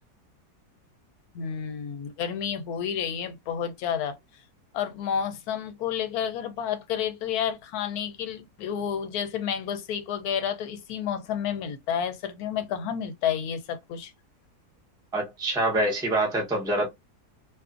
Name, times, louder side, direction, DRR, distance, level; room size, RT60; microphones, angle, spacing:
voice 1, 1.3-4.2 4.7-14.1, left 8 dB, 75° left, 1.1 m, -30 dB
voice 2, 15.1-16.9, right 1 dB, 5° right, 0.6 m, -25 dB
2.5 x 2.4 x 2.4 m
omnidirectional pair, 1.7 m